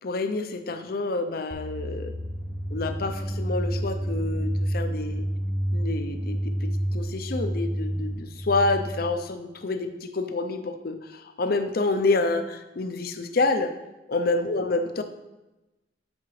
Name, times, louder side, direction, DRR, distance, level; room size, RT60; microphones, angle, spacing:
voice 1, 0.0-2.1 2.7-5.3 5.7-13.7 14.1-15.0, left 3 dB, 60° left, 8 dB, 0.6 m, -28 dB
sound 1, 1.5-9.3, equal, 15° left, 0.5 m, -29 dB
8.4 x 5.9 x 3.2 m, 1.0 s
head